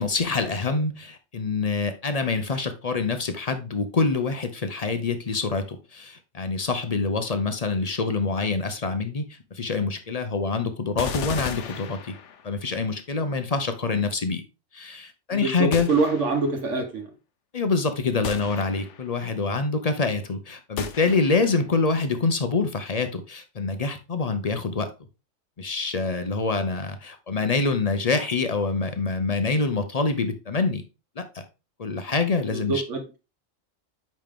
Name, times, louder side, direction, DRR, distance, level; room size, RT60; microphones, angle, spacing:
voice 1, 0.0-12.2 12.4-14.4 14.7-15.9 17.5-24.9 25.6-30.8 31.2-31.4 31.8-32.8, left 4 dB, 40° left, 0.6 m, -26 dB
sound 1, 11.0-12.6 15.7-16.6 18.2-19.2 20.8-21.6, left 7 dB, 65° left, 1.0 m, -35 dB
voice 2, 15.3-17.1 32.5-33.2, right 3 dB, 65° right, 1.4 m, -25 dB
5.3 x 5.2 x 3.6 m
omnidirectional pair, 1.4 m